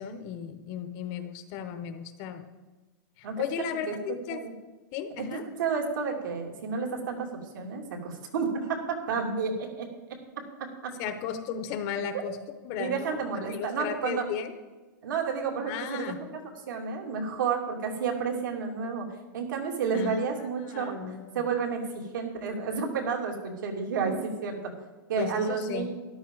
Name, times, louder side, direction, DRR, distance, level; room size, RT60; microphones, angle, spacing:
voice 1, 0.0-2.5 3.2-4.4 4.9-5.4 11.0-12.4 12.6-13.2 13.5-14.5 15.7-16.2 19.9-20.2 20.5-21.5 25.2-25.9, left 8 dB, 30° left, 9 dB, 0.7 m, -35 dB
voice 2, 5.3-9.9 12.8-14.2 15.0-16.1 16.7-19.1 19.3-20.9 21.3-24.7 25.1-25.9, right 5 dB, 70° right, 1 dB, 2.7 m, -31 dB
13.0 x 11.5 x 3.9 m, 1.2 s
supercardioid pair, 175°, 11 cm